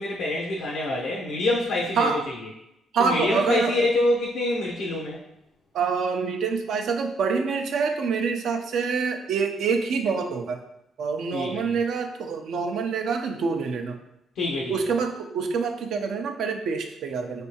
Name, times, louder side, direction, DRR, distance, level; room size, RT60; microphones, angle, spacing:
voice 1, 0.0-2.5 3.0-5.2 11.3-11.7 14.3-14.7, left 2 dB, 90° left, -4 dB, 0.7 m, -26 dB
voice 2, 2.9-3.8 5.7-10.6 11.0-14.0 14.7-17.5, right 5 dB, 70° right, 5 dB, 0.5 m, -26 dB
4.5 x 3.3 x 2.9 m, 0.83 s
cardioid pair, 90°, 0 cm